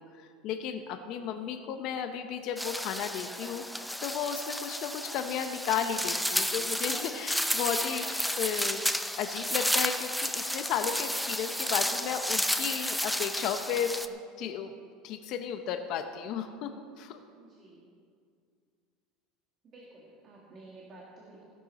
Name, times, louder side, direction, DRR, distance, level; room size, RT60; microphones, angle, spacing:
voice 1, 0.0-8.8 9.2-14.7 15.0-17.2, left 8 dB, 45° left, 8 dB, 0.7 m, -34 dB
sound 1, 2.6-14.1, equal, ahead, 0.4 m, -32 dB
voice 2, 17.4-17.9 19.6-21.5, right 2 dB, 30° right, -3 dB, 1.7 m, -52 dB
16.0 x 10.5 x 4.2 m, 2.2 s
cardioid pair, 170°, 0 cm